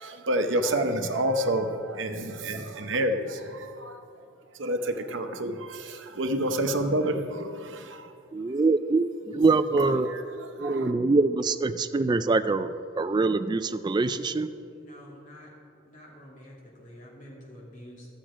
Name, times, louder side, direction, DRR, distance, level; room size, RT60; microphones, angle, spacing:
voice 1, 0.0-4.0 4.5-8.1 9.7-10.9, right 1 dB, 70° right, 6 dB, 0.8 m, -29 dB
voice 2, 8.3-10.1 10.6-14.5, right 3 dB, 20° right, 12 dB, 0.3 m, -24 dB
voice 3, 14.2-15.5 15.8-18.1, equal, 40° left, -4 dB, 2.5 m, -48 dB
12.0 x 7.6 x 5.0 m, 2.5 s
head